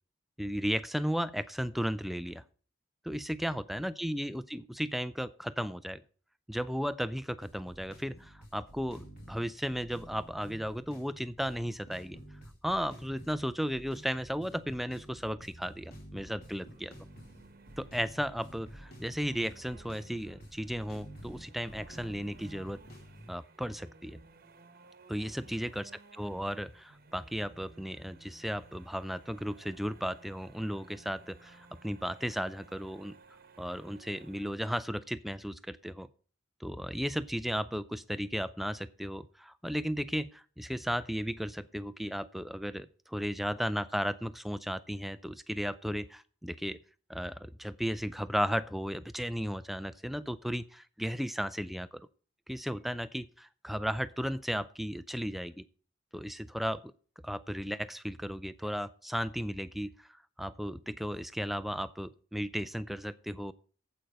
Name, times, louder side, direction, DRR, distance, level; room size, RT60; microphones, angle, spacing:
voice 1, 0.4-2.4 3.0-6.0 6.5-12.2 12.6-16.9 17.8-22.8 23.3-24.2 25.1-25.8 26.2-33.2 33.6-36.1 36.6-46.8 47.1-51.9 52.5-55.6 56.1-56.8 57.2-63.5, equal, ahead, 13 dB, 0.4 m, -35 dB
sound 1, 7.4-23.3, equal, 50° left, 4.4 m, -51 dB
sound 2, 16.4-34.5, right 3 dB, 50° right, 1.1 m, -57 dB
8.6 x 8.0 x 5.1 m, 0.40 s
head